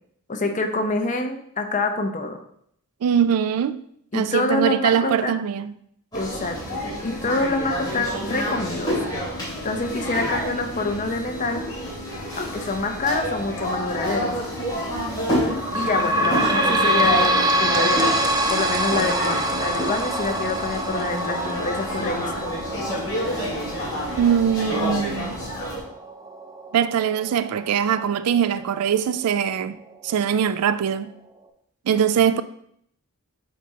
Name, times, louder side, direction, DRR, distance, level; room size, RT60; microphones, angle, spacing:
voice 1, 0.3-2.4 4.1-5.3 6.1-8.9 9.6-11.6 12.4-14.4 15.7-18.1 18.5-22.5, left 3 dB, 35° left, 0.7 m, -26 dB
voice 2, 3.0-3.8 4.1-5.7 24.2-25.3 26.7-29.8 30.0-31.1 31.9-32.4, right 8 dB, 85° right, 0.3 m, -22 dB
sound 1, 6.1-25.8, equal, 20° left, 2.5 m, -28 dB
sound 2, 15.5-28.7 29.2-29.3 29.6-29.7 30.5-30.6, right 1 dB, 15° right, 0.5 m, -26 dB
8.3 x 4.3 x 2.8 m
head